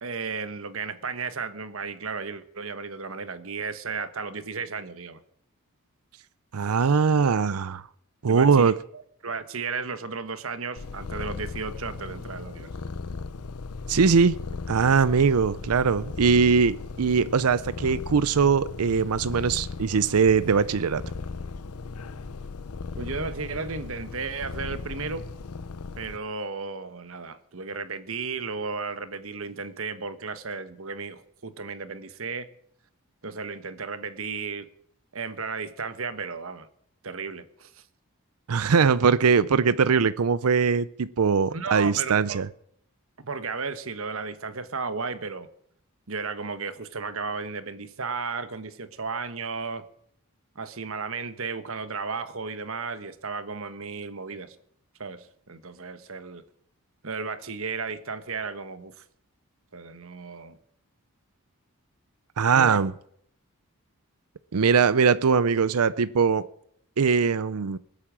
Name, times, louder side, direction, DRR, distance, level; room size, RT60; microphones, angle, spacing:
voice 1, 0.0-5.2 8.3-8.7 9.2-12.9 22.9-25.2 26.0-32.5 33.2-34.7 35.1-36.7 37.0-37.8 41.5-42.4 43.2-45.5 46.1-49.8 50.5-54.6 55.0-56.4 57.0-58.9 59.7-60.6 62.5-62.8, right 4 dB, 65° right, 12 dB, 1.3 m, -34 dB
voice 2, 6.5-7.8 8.2-8.8 13.9-14.4 14.7-21.0 38.5-42.5 62.4-62.9 64.5-66.5 67.0-67.8, right 5 dB, 85° right, 16 dB, 0.6 m, -21 dB
Purr, 10.8-26.2, left 4 dB, 85° left, 0.7 m, -37 dB
20.5 x 8.7 x 7.4 m, 0.67 s
head